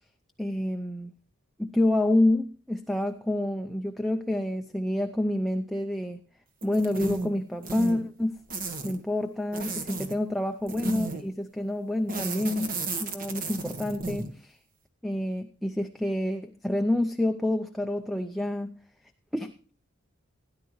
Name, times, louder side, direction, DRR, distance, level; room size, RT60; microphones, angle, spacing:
voice 1, 0.4-1.1 1.6-6.2 6.6-8.4 8.8-12.7 13.0-14.6 15.0-18.8 19.3-19.6, left 1 dB, ahead, 0.5 m, -28 dB
sound 1, 6.6-7.3 7.6-8.0 8.5-9.0 9.5-10.1 10.7-11.3 12.1-14.3, right 3 dB, 45° right, 1.5 m, -33 dB
16.5 x 10.5 x 3.1 m
head